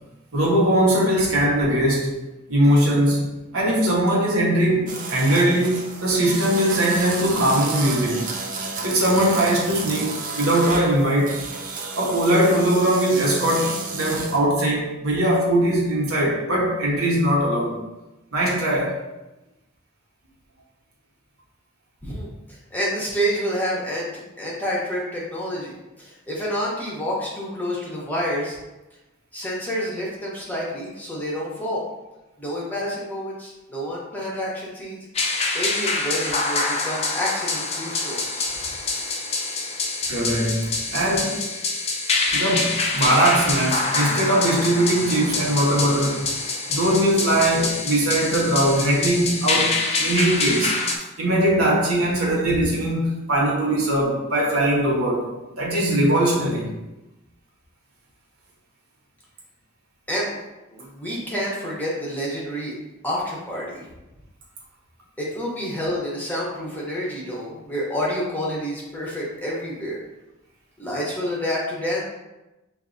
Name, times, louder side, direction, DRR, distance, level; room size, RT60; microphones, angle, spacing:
voice 1, 0.3-2.2 2.5-3.3 3.5-8.3 8.8-11.4 12.0-17.8 18.3-19.0 40.1-41.4 42.3-46.3 46.7-50.7 51.2-55.2 55.5-56.7, right 1 dB, 85° right, -4 dB, 1.2 m, -20 dB
sound 1, 4.9-14.4, right 4 dB, 40° right, 0.5 m, -32 dB
voice 2, 22.0-24.1 24.4-28.6 29.3-31.8 32.4-35.1 35.5-38.4 60.1-60.4 60.7-62.8 63.0-63.8 65.2-70.0 70.8-72.0, equal, 10° left, -5 dB, 0.9 m, -28 dB
sound 2, 35.1-51.0, left 3 dB, 30° left, 0.4 m, -26 dB
6.0 x 2.7 x 2.6 m, 1.0 s
head